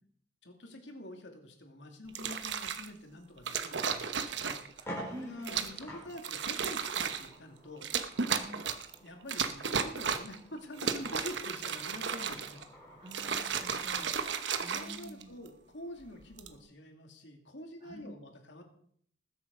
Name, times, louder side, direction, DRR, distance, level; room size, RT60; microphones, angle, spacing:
voice 1, 0.4-7.9 9.0-12.6 14.6-18.6, left 1 dB, 75° left, 3 dB, 2.6 m, -47 dB
sound 1, 2.1-2.9 3.5-4.8 5.4-5.8 6.2-7.3 7.8-8.9 9.3-10.4 10.7-12.6 13.1-15.5 16.2-16.5, right 6 dB, 75° right, 1.0 m, -34 dB
sound 2, 4.8-13.4, equal, 15° left, 4.4 m, -50 dB
voice 2, 5.1-5.6 8.4-8.6 13.0-14.1 14.6-15.3 17.8-18.1, equal, 25° right, 4 dB, 1.7 m, -47 dB
20.0 x 7.5 x 5.4 m, 0.64 s
head